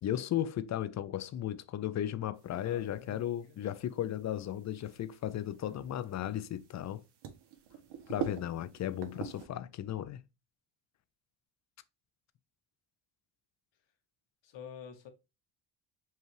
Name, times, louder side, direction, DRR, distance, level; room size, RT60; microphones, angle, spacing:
voice 1, 0.0-7.0 8.1-10.2, left 11 dB, 40° left, 0.4 m, -35 dB
sound 1, 2.4-9.5, right 8 dB, 60° right, 1.0 m, -45 dB
voice 2, 2.6-3.6 14.4-15.1, left 7 dB, 65° left, 1.2 m, -49 dB
5.4 x 2.4 x 3.2 m
cardioid pair, 100°, 46 cm